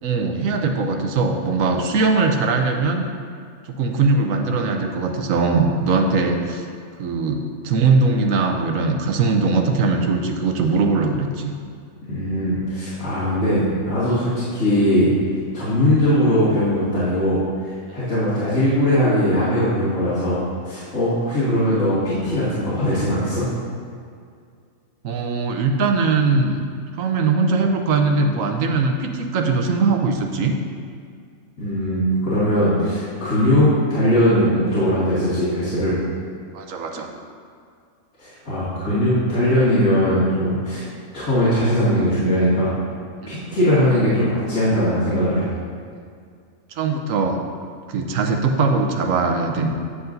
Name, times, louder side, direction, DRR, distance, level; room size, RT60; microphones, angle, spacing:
voice 1, 0.0-3.1 3.7-6.7 7.0-11.5 17.9-18.0 25.0-26.6 27.0-30.6 36.5-37.1 43.2-43.4 46.7-47.4 47.9-49.7, right 4 dB, 85° right, 4 dB, 1.2 m, -20 dB
voice 2, 12.1-15.1 15.5-23.5 31.6-36.0 38.2-40.8 41.1-42.7 43.3-45.5, equal, 80° left, -13 dB, 2.7 m, -20 dB
9.7 x 8.0 x 2.6 m, 2.2 s
omnidirectional pair, 1.4 m